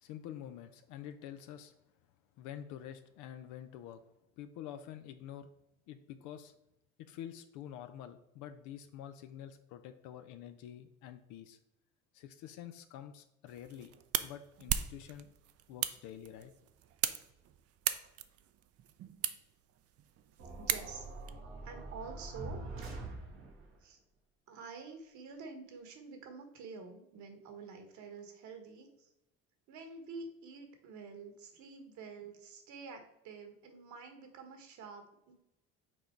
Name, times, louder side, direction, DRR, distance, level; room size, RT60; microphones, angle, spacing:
voice 1, 0.0-1.8 2.4-4.0 4.4-5.5 5.9-6.5 7.0-11.6 12.1-13.9 14.2-15.3 15.7-16.5, left 10 dB, 70° left, 9 dB, 0.6 m, -47 dB
sound 1, 13.5-21.3, right 11 dB, 50° right, 0.5 m, -39 dB
sound 2, 20.4-23.7, right 2 dB, 90° right, 1.4 m, -44 dB
voice 2, 20.6-21.1 21.6-22.6 23.8-24.0 24.5-29.1 29.7-35.3, right 4 dB, 65° right, 5 dB, 1.5 m, -48 dB
6.2 x 3.8 x 4.5 m, 0.87 s
supercardioid pair, 80°, 31 cm